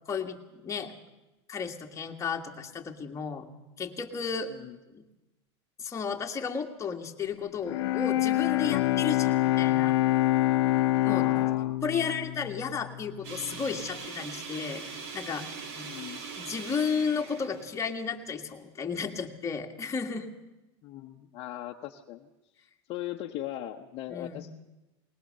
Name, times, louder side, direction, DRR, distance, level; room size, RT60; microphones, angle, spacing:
voice 1, 0.1-0.9 1.5-3.5 3.8-4.5 4.9-5.0 5.8-10.0 11.0-11.4 11.8-14.8 15.1-15.5 15.8-15.9 16.4-20.3 24.1-24.4, left 6 dB, 20° left, 2 dB, 1.9 m, -33 dB
voice 2, 4.5-4.8 11.0-11.8 15.9-16.2 20.8-22.3 22.6-24.5, left 13 dB, 45° left, 1 dB, 1.0 m, -39 dB
Bowed string instrument, 7.6-13.6, left 16 dB, 70° left, 0.7 m, -26 dB
sound 1, 13.2-18.4, right 5 dB, 65° right, 2.9 m, -41 dB
20.0 x 19.5 x 6.7 m, 1.0 s
supercardioid pair, 120°, 14 cm